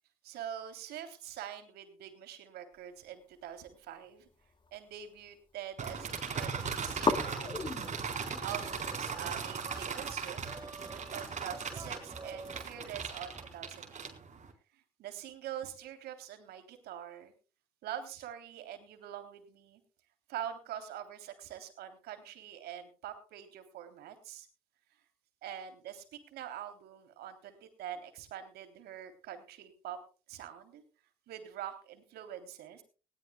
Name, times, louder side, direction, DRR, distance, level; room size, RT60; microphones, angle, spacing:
voice 1, 0.2-4.3 4.7-8.0 8.4-10.5 10.9-14.2 14.7-17.3 17.8-19.8 20.3-24.5 25.4-30.0 30.3-30.8 31.3-32.8, right 10 dB, 65° right, 7 dB, 3.4 m, -44 dB
sound 1, 3.5-5.3 5.6-6.2 6.5-6.6 7.0-13.8, left 3 dB, 30° left, 2.2 m, -40 dB
sound 2, 5.8-14.5, right 5 dB, 45° right, 4.4 m, -39 dB
sound 3, 6.5-13.5, right 3 dB, 25° right, 1.8 m, -49 dB
20.0 x 18.5 x 2.3 m, 0.37 s
hypercardioid pair, 55°, 17 cm